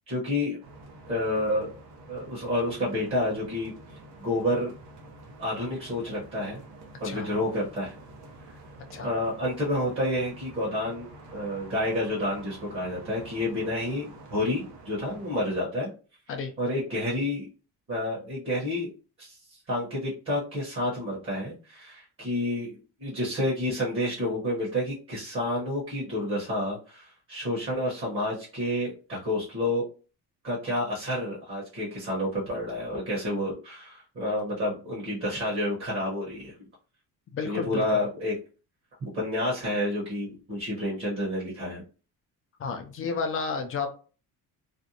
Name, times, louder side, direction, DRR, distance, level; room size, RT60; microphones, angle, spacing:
voice 1, 0.1-0.6 1.1-1.7 2.1-3.7 4.2-4.7 5.4-6.6 7.0-8.0 8.5-8.6 9.0-15.9 16.6-17.5 17.9-18.9 19.2-29.9 30.4-36.5 37.4-38.4 39.0-41.8, left 1 dB, 35° right, -5 dB, 1.0 m, -29 dB
Louisville Light Traffic, 0.6-15.6, right 2 dB, 75° right, 0.8 m, -48 dB
voice 2, 37.3-37.8 42.6-43.9, left 5 dB, 35° left, 6 dB, 0.4 m, -31 dB
2.6 x 2.1 x 2.7 m, 0.37 s
cardioid pair, 150°, 39 cm